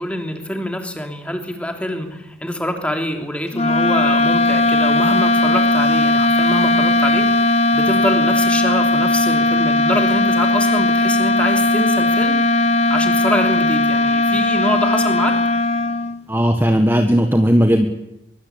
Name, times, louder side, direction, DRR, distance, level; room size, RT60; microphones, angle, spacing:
voice 1, 0.0-12.4 12.9-15.3, left 1 dB, 5° left, 4 dB, 3.1 m, -25 dB
sound 1, 3.5-16.2, left 2 dB, 35° left, 1.1 m, -17 dB
voice 2, 16.3-17.9, equal, 10° right, 5 dB, 1.5 m, -15 dB
23.5 x 23.0 x 8.7 m, 0.88 s
head